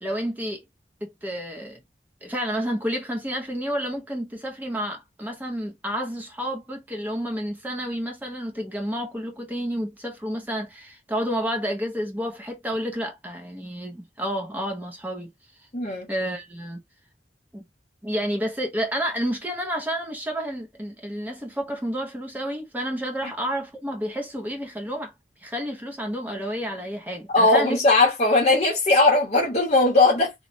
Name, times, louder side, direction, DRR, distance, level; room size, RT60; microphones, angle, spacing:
voice 1, 0.0-0.6 1.0-1.8 2.2-15.3 16.1-16.8 17.5-17.7 18.0-25.1 25.4-27.8, equal, 10° right, 0.5 m, -30 dB
voice 2, 15.7-16.1 23.2-23.3 27.3-30.3, left 2 dB, 35° left, 0.8 m, -19 dB
3.0 x 2.1 x 2.5 m
head